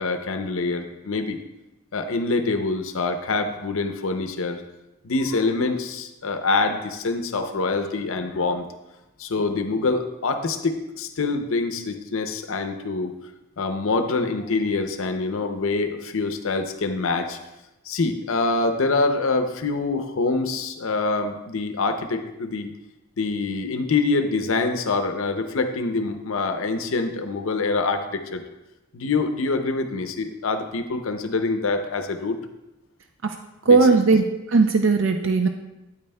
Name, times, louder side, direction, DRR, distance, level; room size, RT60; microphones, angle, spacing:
voice 1, 0.0-1.4 1.9-4.6 5.0-8.7 9.2-13.1 13.6-17.4 17.9-22.7 23.2-28.4 28.9-32.4 33.7-33.8, left 3 dB, 70° left, 8 dB, 0.6 m, -25 dB
voice 2, 33.7-35.5, right 4 dB, 60° right, 5 dB, 0.4 m, -18 dB
8.8 x 8.7 x 2.2 m, 0.98 s
head